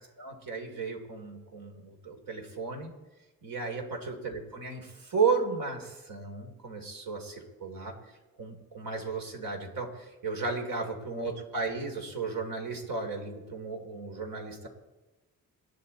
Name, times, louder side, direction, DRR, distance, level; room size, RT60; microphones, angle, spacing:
voice 1, 0.2-2.9 3.4-7.9 8.4-9.9 10.2-14.7, right 4 dB, 75° right, 3 dB, 3.6 m, -34 dB
27.5 x 10.5 x 4.3 m, 1.1 s
cardioid pair, 65°, 35 cm